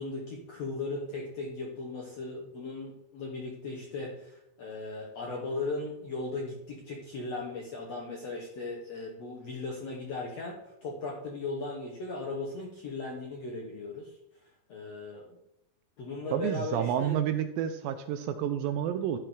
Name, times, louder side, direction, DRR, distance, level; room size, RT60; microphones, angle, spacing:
voice 1, 0.0-14.1 14.7-15.3 16.0-17.2, left 3 dB, 70° left, -2 dB, 1.6 m, -37 dB
voice 2, 16.3-19.2, right 9 dB, 80° right, 9 dB, 2.2 m, -30 dB
12.0 x 4.6 x 4.9 m, 0.80 s
omnidirectional pair, 4.4 m